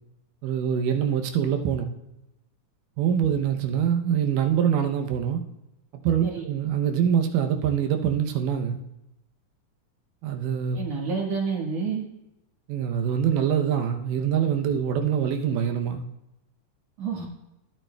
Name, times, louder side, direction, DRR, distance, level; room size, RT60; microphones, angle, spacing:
voice 1, 0.4-1.9 3.0-5.4 6.0-8.8 10.2-10.8 12.7-16.0, right 8 dB, 85° right, 5 dB, 2.4 m, -24 dB
voice 2, 10.8-12.0 17.0-17.3, right 5 dB, 55° right, -2 dB, 2.5 m, -29 dB
15.0 x 8.7 x 2.2 m, 0.94 s
omnidirectional pair, 3.7 m